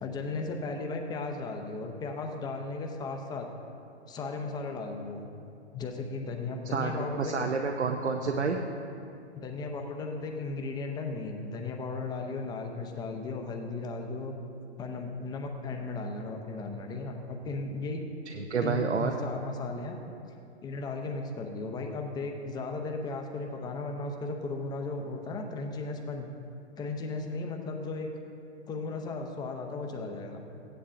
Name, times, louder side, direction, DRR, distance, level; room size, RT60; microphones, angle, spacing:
voice 1, 0.0-3.5 4.1-5.2 5.7-7.5 9.3-14.3 14.8-18.0 18.6-20.0 20.6-26.3 26.8-28.1 28.7-30.4, left 3 dB, 10° left, 3 dB, 0.8 m, -36 dB
voice 2, 6.7-8.6 18.3-19.2, right 5 dB, 75° right, 4 dB, 0.8 m, -29 dB
16.5 x 10.0 x 2.6 m, 2.6 s
figure-of-eight pair, 115°, 34 cm